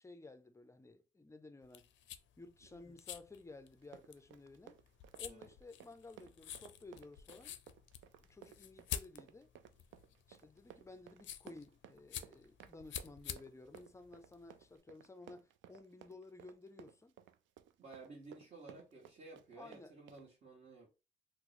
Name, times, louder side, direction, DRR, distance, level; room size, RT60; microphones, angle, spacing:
voice 1, 0.0-1.9 2.4-4.8 5.2-7.6 8.2-9.5 10.3-17.2 19.6-19.9, left 3 dB, 15° left, 0.4 m, -55 dB
sound 1, 1.6-14.8, left 10 dB, 70° left, 0.4 m, -49 dB
Run, 3.8-20.3, right 10 dB, 75° right, 0.4 m, -58 dB
voice 2, 17.8-21.0, right 3 dB, 40° right, 1.3 m, -54 dB
2.9 x 2.0 x 4.0 m
cardioid pair, 90°, 20 cm